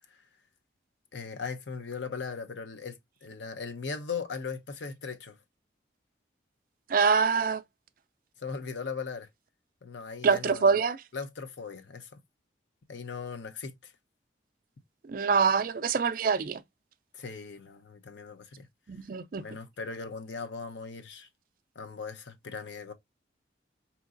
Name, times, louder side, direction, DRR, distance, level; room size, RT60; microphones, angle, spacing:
voice 1, 1.1-5.4 8.4-9.3 9.8-10.8 11.1-12.2 12.9-13.9 17.1-18.7 19.4-21.3 21.7-22.9, left 5 dB, 75° left, 0.7 m, -39 dB
voice 2, 6.9-7.6 10.2-11.0 15.1-16.6 18.9-19.4, right 5 dB, 50° right, 0.4 m, -25 dB
4.5 x 2.9 x 2.4 m
head